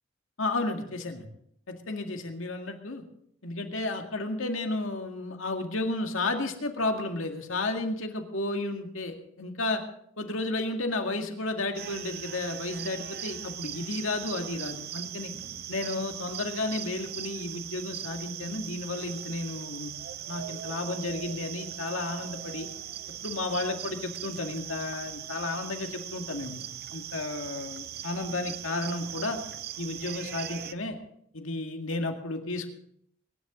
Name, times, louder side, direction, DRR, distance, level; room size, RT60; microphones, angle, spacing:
voice 1, 0.4-1.3 1.7-3.0 3.4-9.8 10.2-15.3 15.7-19.9 20.3-22.7 23.2-26.6 26.9-29.4 29.8-31.0 31.3-32.7, left 2 dB, 80° left, 4 dB, 2.1 m, -32 dB
sound 1, 11.7-30.7, right 11 dB, 50° right, 0.7 m, -40 dB
23.5 x 11.0 x 3.9 m, 0.72 s
head